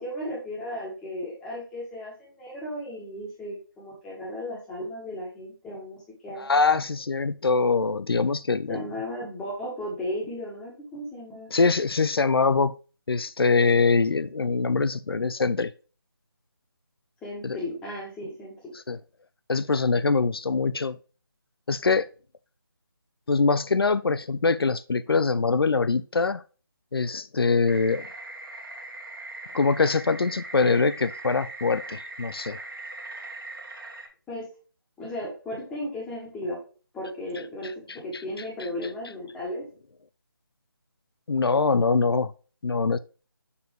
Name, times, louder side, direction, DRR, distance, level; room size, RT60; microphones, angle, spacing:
voice 1, 0.0-6.5 8.7-11.5 17.2-18.5 34.3-34.5 35.0-36.6 36.9-37.7 38.0-39.6, left 1 dB, 5° left, 1.6 m, -35 dB
voice 2, 6.4-8.8 11.5-12.7 13.1-15.7 17.4-17.6 18.9-19.0 19.5-21.0 21.7-22.1 23.3-26.4 26.9-28.1 29.5-32.6 38.1-38.2 41.3-42.3 42.6-43.0, left 4 dB, 85° left, 0.5 m, -23 dB
sound 1, 27.7-34.1, right 2 dB, 65° right, 1.6 m, -40 dB
6.7 x 4.7 x 3.1 m
figure-of-eight pair, 165°, 12 cm